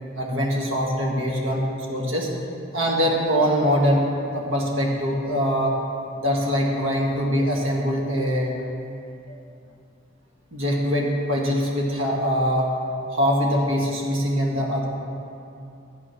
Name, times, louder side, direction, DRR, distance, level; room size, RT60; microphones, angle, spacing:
voice 1, 0.2-1.6 1.9-2.3 2.7-4.0 4.3-5.8 6.2-8.6 9.3-9.4 10.5-12.7 13.1-14.9, equal, 70° right, -2 dB, 2.0 m, -23 dB
12.5 x 8.1 x 6.0 m, 2.6 s
head